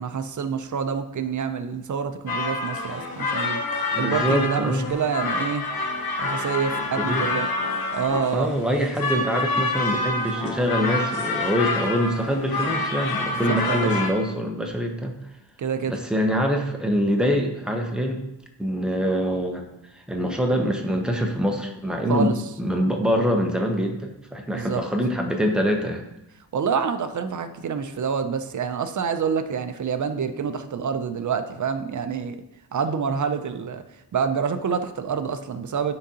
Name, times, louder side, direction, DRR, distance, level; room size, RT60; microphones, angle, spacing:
voice 1, 0.0-3.6 4.0-5.6 6.2-7.5 7.9-8.5 13.3-14.0 15.6-15.9 22.1-22.3 24.5-24.8 26.5-32.4 32.7-33.8 34.1-35.9, right 6 dB, 45° right, 9 dB, 0.5 m, -27 dB
sound 1, 2.3-14.1, left 3 dB, 55° left, 0.8 m, -27 dB
voice 2, 3.9-4.9 7.0-7.4 8.3-15.2 15.9-18.2 18.6-19.7 20.1-26.0, equal, ahead, 1 dB, 0.7 m, -24 dB
9.6 x 3.8 x 2.8 m, 0.86 s
wide cardioid pair, 140°, 44 cm